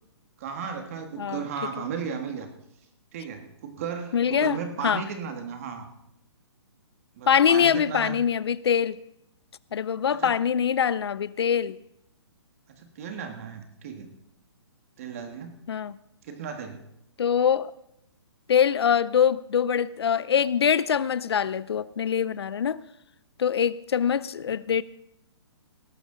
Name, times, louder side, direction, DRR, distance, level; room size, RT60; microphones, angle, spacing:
voice 1, 0.4-2.5 3.1-5.9 7.2-8.2 10.1-10.4 12.7-14.1 15.0-15.6 16.2-16.8, right 6 dB, 30° right, 6 dB, 1.6 m, -35 dB
voice 2, 4.1-4.6 4.8-5.0 7.3-9.0 9.7-11.8 15.7-15.9 17.2-17.7 18.5-22.8 23.4-24.8, left 8 dB, 65° left, 19 dB, 0.5 m, -23 dB
18.5 x 11.5 x 3.8 m, 0.80 s
hypercardioid pair, 170°, 15 cm